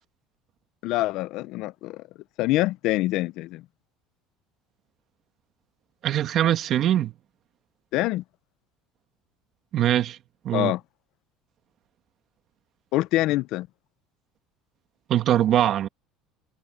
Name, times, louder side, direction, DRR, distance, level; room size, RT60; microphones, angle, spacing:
voice 1, 0.8-2.0 2.4-3.6 7.9-8.2 10.5-10.8 12.9-13.7, left 17 dB, 65° left, 0.7 m, -25 dB
voice 2, 6.0-7.1 9.7-10.2 10.4-10.7 15.1-15.9, right 11 dB, 50° right, 1.9 m, -22 dB
supercardioid pair, 110°, 0 cm